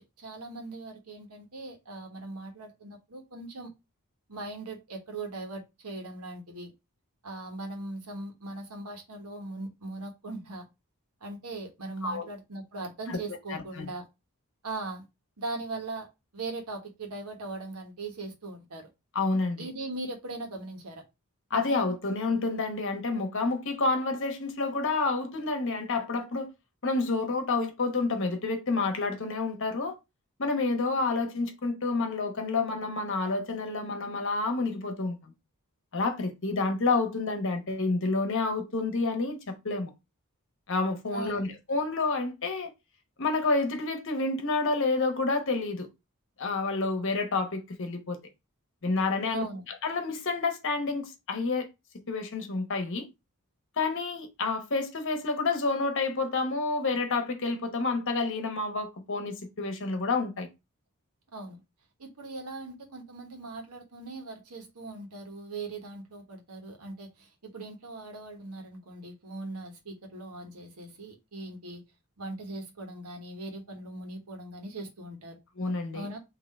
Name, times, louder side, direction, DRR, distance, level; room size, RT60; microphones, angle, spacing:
voice 1, 0.0-3.7 4.3-6.7 7.2-10.6 11.2-14.1 14.6-15.1 15.4-16.1 16.3-18.9 19.6-21.0 41.1-41.6 49.3-49.6 61.3-61.6 62.0-71.8 72.2-75.4 75.9-76.2, right 2 dB, 90° right, 1.2 m, -40 dB
voice 2, 13.5-13.9 19.1-19.7 21.5-26.5 26.8-29.9 30.4-35.3 35.9-39.9 40.7-42.7 43.2-45.9 46.4-48.2 48.8-49.5 49.8-51.7 52.1-53.1 53.8-60.5 75.6-76.1, left 3 dB, 60° left, 1.0 m, -29 dB
3.8 x 2.8 x 4.2 m
head